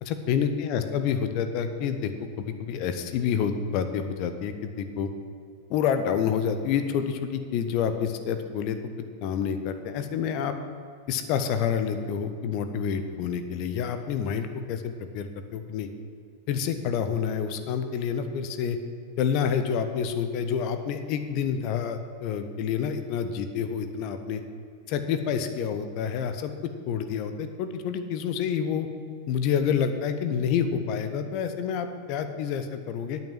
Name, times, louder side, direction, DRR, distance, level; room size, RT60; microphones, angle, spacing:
voice 1, 0.0-2.1 2.4-5.1 5.7-8.8 9.2-10.6 11.1-15.9 16.5-18.8 19.2-24.4 24.9-26.5 26.9-28.9 29.3-33.2, left 7 dB, 45° left, 9 dB, 1.0 m, -28 dB
9.1 x 8.9 x 7.6 m, 2.3 s
figure-of-eight pair, 90°, 0 cm